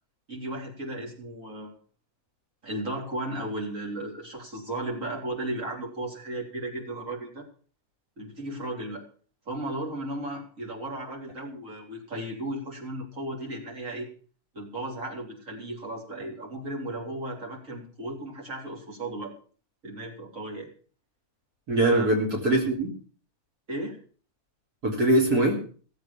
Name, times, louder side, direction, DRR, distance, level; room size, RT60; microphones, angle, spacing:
voice 1, 0.3-1.7 2.6-7.5 8.2-9.0 9.5-14.1 14.5-19.3 19.8-20.7 21.8-22.1 23.7-24.0, right 1 dB, 60° right, -2 dB, 4.2 m, -35 dB
voice 2, 21.7-22.9 24.8-25.6, right 1 dB, 85° right, -1 dB, 3.8 m, -22 dB
18.0 x 8.1 x 7.2 m, 0.42 s
omnidirectional pair, 1.6 m